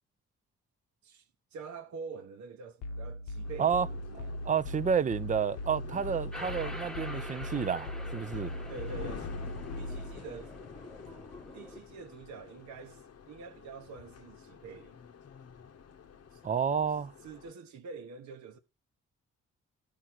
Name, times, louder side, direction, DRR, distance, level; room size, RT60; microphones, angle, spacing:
voice 1, 1.0-4.3 8.7-9.3 9.8-10.6 11.5-15.0 16.3-16.4 17.2-18.6, right 5 dB, 70° right, 1.0 m, -46 dB
sound 1, 2.8-10.2, left 1 dB, 85° left, 0.9 m, -39 dB
sound 2, 3.4-17.5, left 7 dB, 55° left, 0.9 m, -48 dB
voice 2, 4.1-8.5 16.4-17.1, right 7 dB, 25° right, 0.5 m, -30 dB
sound 3, 6.3-11.8, left 1 dB, ahead, 1.1 m, -46 dB
12.0 x 4.9 x 5.9 m
supercardioid pair, 55°, 30 cm